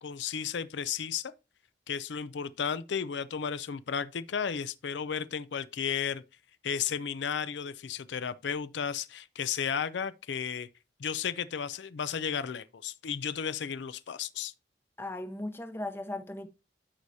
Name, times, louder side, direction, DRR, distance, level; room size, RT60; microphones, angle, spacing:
voice 1, 0.0-1.3 1.9-6.2 6.6-10.7 11.0-14.5, left 7 dB, 80° left, 0.5 m, -33 dB
voice 2, 15.0-16.5, left 1 dB, 15° left, 0.7 m, -37 dB
12.5 x 4.8 x 2.7 m
head